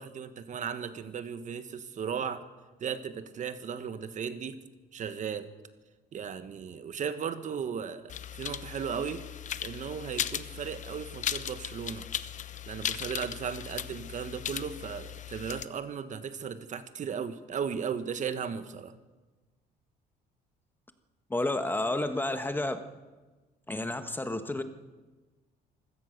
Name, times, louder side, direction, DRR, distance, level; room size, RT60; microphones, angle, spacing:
voice 1, 0.0-2.4 2.8-4.6 4.9-5.5 6.1-9.2 9.6-12.1 12.7-18.9, right 7 dB, 45° right, 11 dB, 1.4 m, -36 dB
keyboard clicks, 8.1-15.7, left 9 dB, 50° left, 0.9 m, -37 dB
voice 2, 21.3-22.9 23.7-24.6, left 2 dB, 10° left, 9 dB, 1.4 m, -30 dB
25.0 x 16.0 x 6.7 m, 1.2 s
cardioid pair, 110°, 17 cm